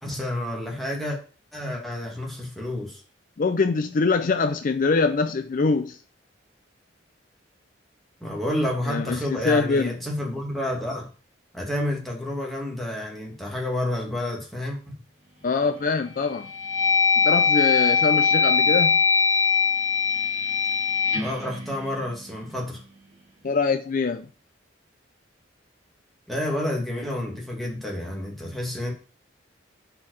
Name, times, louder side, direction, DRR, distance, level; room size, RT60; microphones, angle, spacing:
voice 1, 0.0-1.2 1.5-3.0 8.2-11.1 11.5-14.8 21.2-22.8 26.3-28.9, left 1 dB, ahead, 2.0 m, -29 dB
voice 2, 3.4-6.0 8.9-9.9 15.4-16.5 17.2-19.0 23.4-24.3, left 4 dB, 45° left, 0.4 m, -24 dB
sound 1, 15.4-15.9 16.4-22.5, left 5 dB, 40° right, 1.9 m, -22 dB
5.6 x 4.6 x 6.3 m
head